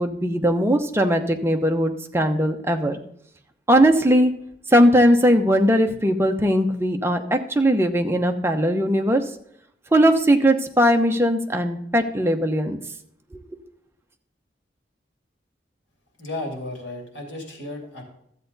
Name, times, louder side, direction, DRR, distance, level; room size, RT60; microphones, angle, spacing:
voice 1, 0.0-3.0 3.7-4.3 4.7-9.2 9.9-12.8 13.3-13.4, equal, 15° right, 4 dB, 0.8 m, -19 dB
voice 2, 16.2-18.0, left 2 dB, 85° left, 1 dB, 2.8 m, -33 dB
13.0 x 7.9 x 4.0 m, 0.71 s
head